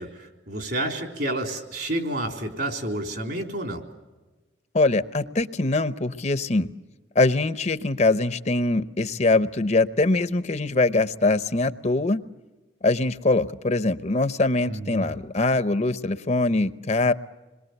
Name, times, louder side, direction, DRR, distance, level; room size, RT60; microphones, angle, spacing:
voice 1, 0.0-3.8 14.7-15.2, right 1 dB, 60° right, 4 dB, 4.0 m, -30 dB
voice 2, 4.7-6.7 7.1-12.2 12.8-17.1, left 2 dB, 35° left, 12 dB, 0.8 m, -23 dB
27.0 x 22.0 x 8.0 m, 1.2 s
head